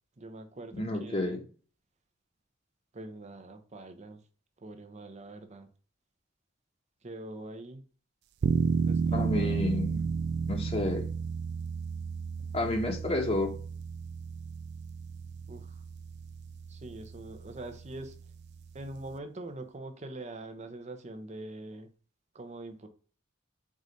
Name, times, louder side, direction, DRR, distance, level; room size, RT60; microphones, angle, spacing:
voice 1, 0.2-1.4 2.9-4.2 4.6-5.7 7.0-7.8 8.8-9.6 15.5-15.8 16.7-18.1 18.7-21.9 22.3-22.9, right 2 dB, 35° right, 7 dB, 0.8 m, -43 dB
voice 2, 0.7-1.4 9.1-10.1 10.5-11.1 12.5-13.6, left 1 dB, 30° left, 0 dB, 1.1 m, -30 dB
sound 1, 8.4-19.2, right 5 dB, 55° right, 0.4 m, -33 dB
4.8 x 4.0 x 5.2 m, 0.40 s
head